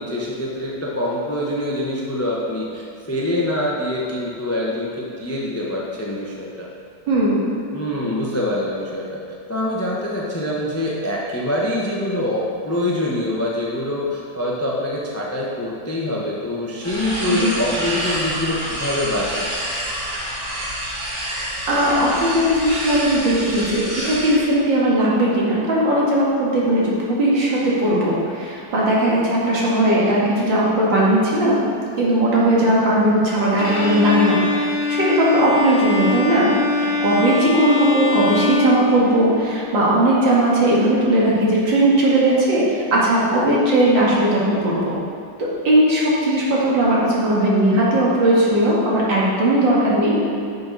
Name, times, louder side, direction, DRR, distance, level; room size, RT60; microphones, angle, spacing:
voice 1, 0.0-6.7 7.7-9.2 9.5-19.5, left 1 dB, 15° left, -4 dB, 0.6 m, -25 dB
voice 2, 7.1-7.4 17.3-17.6 21.7-31.7 32.0-36.6 37.0-44.9 45.4-50.3, right 1 dB, 70° right, -6 dB, 2.5 m, -18 dB
sound 1, 16.8-24.4, right 1 dB, 40° right, 2.2 m, -28 dB
Bowed string instrument, 33.6-39.5, left 3 dB, 50° left, 1.9 m, -22 dB
11.0 x 6.7 x 4.1 m, 2.3 s
omnidirectional pair, 2.1 m